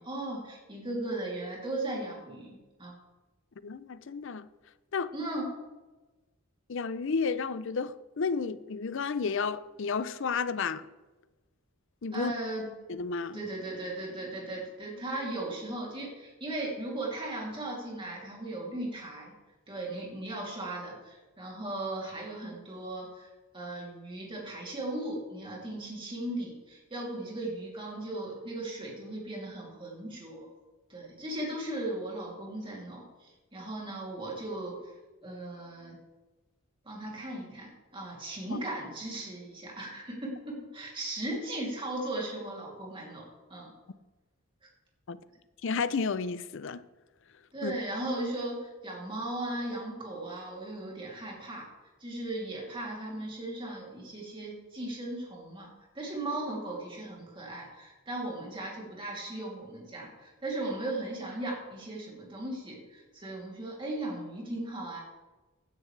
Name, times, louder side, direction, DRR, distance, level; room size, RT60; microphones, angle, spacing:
voice 1, 0.0-3.0 5.1-5.5 12.1-12.7 13.3-19.3 19.7-30.5 30.9-34.9 35.2-36.0 36.8-43.7 47.5-51.7 52.0-65.0, right 1 dB, 25° right, 2.9 m, -37 dB
voice 2, 3.6-4.5 4.9-5.1 6.7-10.9 12.0-12.3 12.9-13.4 38.5-38.6 45.1-45.2 45.6-46.8 47.6-47.7, left 5 dB, 60° left, 0.5 m, -32 dB
16.0 x 10.0 x 3.3 m
head